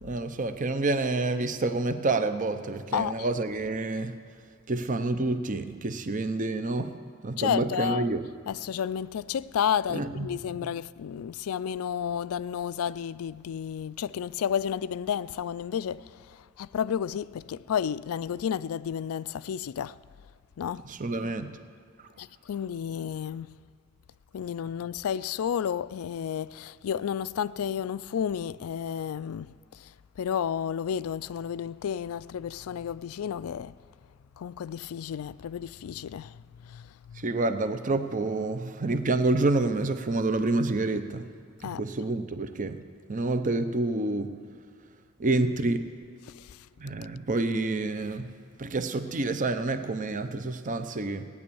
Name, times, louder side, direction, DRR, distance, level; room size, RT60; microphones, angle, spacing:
voice 1, 0.0-4.2 4.7-6.9 7.2-8.3 9.9-10.4 20.8-21.5 22.0-22.1 37.1-41.3 41.6-42.8 43.1-44.4 45.2-45.9 46.8-48.3 48.6-51.3, right 2 dB, 40° right, 0.7 m, -28 dB
voice 2, 7.4-8.1 8.5-20.0 20.6-20.8 22.2-23.5 24.3-29.5 30.2-33.7 34.4-37.2 41.6-41.8 46.3-46.5, left 8 dB, 90° left, 0.3 m, -31 dB
17.0 x 9.6 x 7.0 m
head